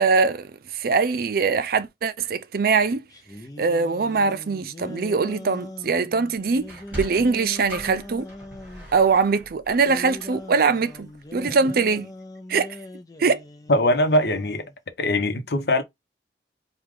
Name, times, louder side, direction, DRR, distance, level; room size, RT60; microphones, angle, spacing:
voice 1, 0.0-3.0 3.6-8.3 8.9-12.1 12.5-12.7 13.2-13.4, right 4 dB, 55° right, 0.5 m, -22 dB
sound 1, 3.1-8.9 9.7-14.8, left 1 dB, 20° left, 0.6 m, -41 dB
Sliding door, 6.6-11.2, equal, 10° right, 3.0 m, -40 dB
voice 2, 13.7-14.6 15.0-15.8, left 1 dB, 65° left, 0.9 m, -21 dB
4.8 x 2.4 x 3.7 m
head